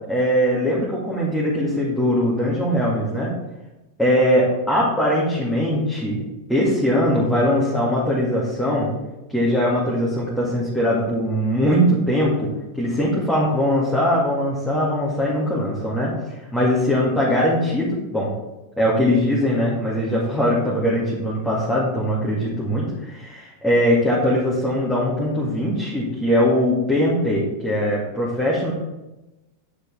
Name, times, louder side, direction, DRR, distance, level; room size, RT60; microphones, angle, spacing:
voice 1, 0.1-3.3 4.0-6.2 6.5-8.9 9.3-12.5 12.8-16.1 16.5-18.3 18.8-28.7, equal, ahead, -8 dB, 2.1 m, -21 dB
9.0 x 6.7 x 3.4 m, 1.0 s
figure-of-eight pair, 90°, 0 cm